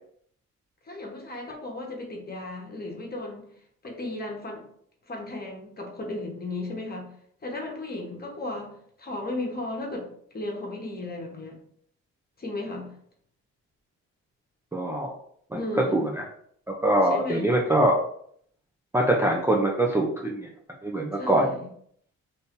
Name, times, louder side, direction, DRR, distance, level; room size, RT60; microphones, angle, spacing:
voice 1, 0.8-3.5 3.8-4.6 5.1-7.1 7.4-8.7 9.0-10.1 10.3-11.6 12.4-12.9 15.5-16.1 17.0-17.4 21.1-21.7, left 2 dB, 30° left, 1 dB, 1.1 m, -35 dB
voice 2, 14.7-15.1 15.5-15.6 15.9-16.2 16.7-18.0 18.9-20.5 20.8-21.5, right 1 dB, 10° right, -2 dB, 0.5 m, -23 dB
2.7 x 2.6 x 3.6 m, 0.64 s
cardioid pair, 90°, 30 cm